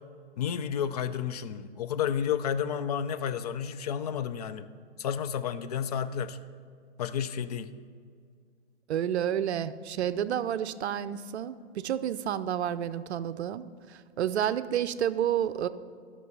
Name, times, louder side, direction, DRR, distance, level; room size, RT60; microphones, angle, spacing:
voice 1, 0.4-4.6 5.0-6.4 7.0-7.7, left 8 dB, 35° left, 11 dB, 0.4 m, -31 dB
voice 2, 8.9-13.6 13.9-15.7, right 10 dB, 65° right, 13 dB, 0.6 m, -30 dB
11.5 x 6.1 x 5.5 m, 2.2 s
hypercardioid pair, 135°, 36 cm